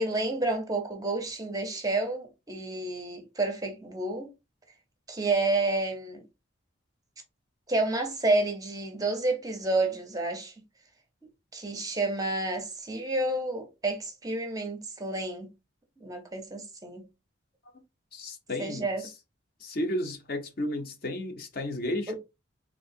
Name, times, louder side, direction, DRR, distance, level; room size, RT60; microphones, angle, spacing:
voice 1, 0.0-4.3 5.1-6.2 7.7-10.5 11.5-15.5 16.0-17.0 18.6-19.1 22.1-22.2, right 2 dB, 15° right, 0.6 m, -30 dB
voice 2, 18.1-18.9 19.6-22.1, left 1 dB, 45° left, 0.6 m, -33 dB
3.5 x 2.8 x 2.6 m
head